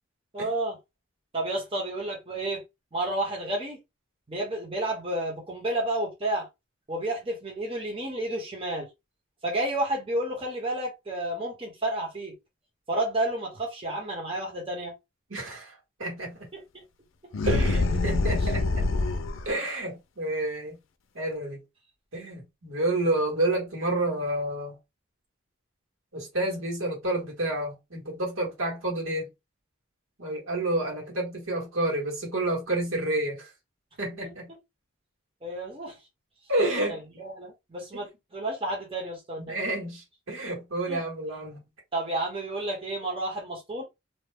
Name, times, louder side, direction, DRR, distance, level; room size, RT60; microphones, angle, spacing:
voice 1, 0.3-0.7 1.3-2.6 2.9-3.8 4.3-6.5 6.9-8.9 9.4-12.4 12.9-14.9 16.7-16.8 35.4-36.0 36.9-39.6 40.9-41.0 41.9-43.8, right 1 dB, 25° right, 1.0 m, -31 dB
voice 2, 15.3-16.5 17.4-18.9 19.4-20.8 21.1-21.6 22.1-24.8 26.1-29.3 30.2-33.5 34.0-34.5 36.5-37.0 37.9-38.0 39.4-41.6, right 1 dB, 85° right, 1.5 m, -29 dB
sound 1, 17.3-19.5, left 2 dB, 80° left, 0.5 m, -25 dB
2.8 x 2.1 x 3.4 m
head